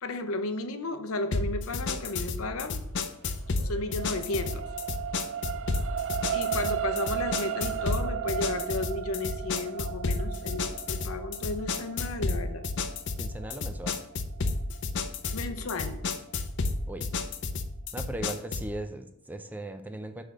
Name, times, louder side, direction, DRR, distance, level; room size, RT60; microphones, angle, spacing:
voice 1, 0.0-2.8 3.6-4.6 6.3-12.7 15.3-16.0, left 2 dB, 90° left, 8 dB, 0.8 m, -33 dB
sound 1, 1.3-18.8, left 3 dB, 60° left, 0.6 m, -32 dB
sound 2, 3.2-15.7 16.2-16.3, right 10 dB, 65° right, 0.4 m, -36 dB
voice 2, 13.2-14.0 16.9-17.1 17.9-20.2, right 1 dB, 10° right, 7 dB, 0.5 m, -38 dB
7.8 x 3.5 x 6.3 m, 0.77 s
head